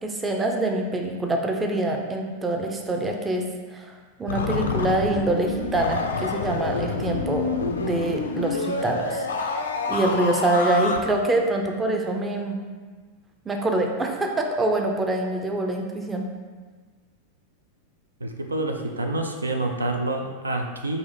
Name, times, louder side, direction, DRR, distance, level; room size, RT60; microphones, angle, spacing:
voice 1, 0.0-3.4 3.7-7.5 7.8-9.6 9.9-12.6 13.5-16.3, right 2 dB, 15° right, 2 dB, 0.4 m, -25 dB
sound 1, 4.3-11.0, left 4 dB, 70° left, 0.4 m, -28 dB
voice 2, 18.2-21.0, right 2 dB, 80° right, 4 dB, 0.3 m, -27 dB
3.9 x 2.5 x 3.9 m, 1.4 s
figure-of-eight pair, 90°, 0 cm